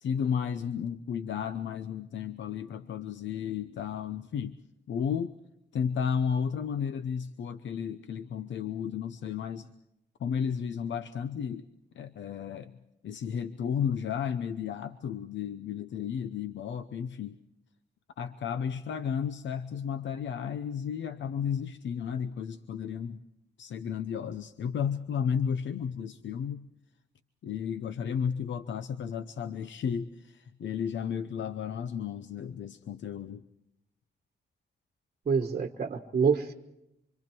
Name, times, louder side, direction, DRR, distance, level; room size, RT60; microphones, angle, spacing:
voice 1, 0.0-4.6 4.9-5.3 5.7-9.7 10.2-11.7 11.9-12.7 13.0-17.4 18.2-23.2 23.6-26.7 27.4-33.4, left 7 dB, 80° left, 10 dB, 0.8 m, -33 dB
voice 2, 35.3-36.5, right 6 dB, 40° right, 5 dB, 1.3 m, -27 dB
26.5 x 25.5 x 4.5 m, 0.82 s
wide cardioid pair, 170°, 19 cm